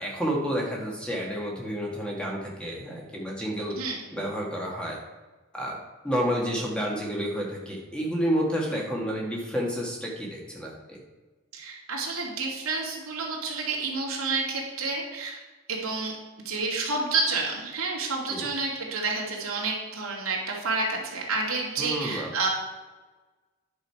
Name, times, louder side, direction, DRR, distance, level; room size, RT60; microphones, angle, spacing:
voice 1, 0.0-3.8 4.1-5.0 5.5-5.8 6.0-11.0 18.3-18.5 21.8-22.3, equal, 5° left, -2 dB, 1.6 m, -30 dB
voice 2, 11.5-15.4 15.7-16.1 16.4-22.5, right 3 dB, 80° right, -2 dB, 2.4 m, -29 dB
10.5 x 6.4 x 4.7 m, 1.2 s
head